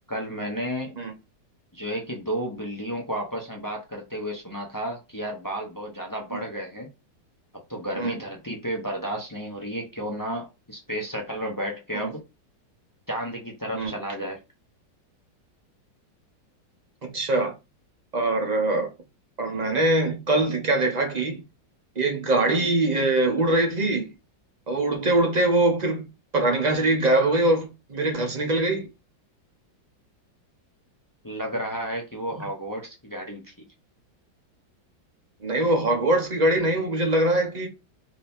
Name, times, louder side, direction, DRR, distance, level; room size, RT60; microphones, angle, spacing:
voice 1, 0.1-0.9 1.7-6.9 7.7-12.2 13.1-14.4 31.2-33.5, equal, 25° left, 0.4 m, -32 dB
voice 2, 17.1-17.5 18.1-18.9 19.4-21.4 22.0-24.1 24.7-26.1 26.3-28.9 35.4-37.7, right 2 dB, 35° right, 0.7 m, -23 dB
5.0 x 2.8 x 3.5 m
omnidirectional pair, 2.0 m